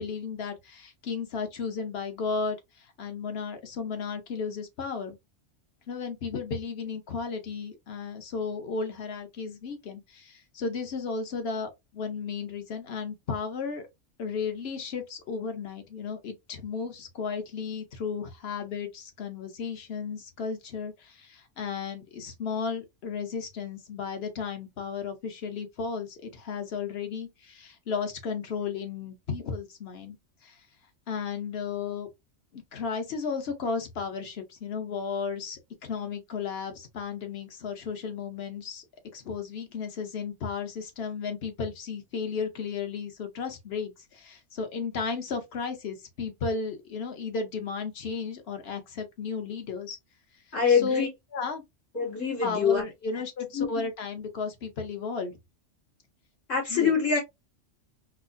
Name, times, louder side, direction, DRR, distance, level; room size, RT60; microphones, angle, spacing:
voice 1, 0.0-5.2 5.9-13.9 14.2-30.2 30.4-30.6 31.1-32.1 32.5-38.8 39.1-50.0 50.7-51.0 51.3-51.6 52.4-55.4 56.7-56.9, left 5 dB, 55° left, 1.1 m, -34 dB
voice 2, 50.5-51.1 51.9-52.8 53.5-53.9 56.5-57.2, left 6 dB, 80° left, 2.5 m, -24 dB
4.6 x 2.0 x 2.5 m
omnidirectional pair, 1.3 m